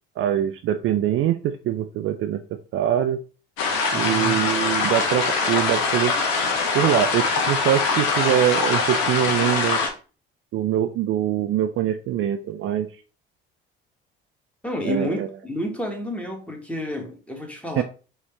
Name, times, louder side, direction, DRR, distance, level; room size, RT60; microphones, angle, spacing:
voice 1, 0.2-2.4 2.7-3.2 3.9-6.1 6.7-9.8 10.5-12.9 14.8-15.3 17.8-17.9, right 11 dB, 45° right, 0.4 m, -23 dB
sound 1, 3.6-9.9, left 4 dB, 65° left, 1.1 m, -23 dB
voice 2, 3.9-4.4 14.6-17.8, left 1 dB, 5° left, 1.6 m, -30 dB
5.1 x 2.9 x 3.3 m
hypercardioid pair, 55°, 29 cm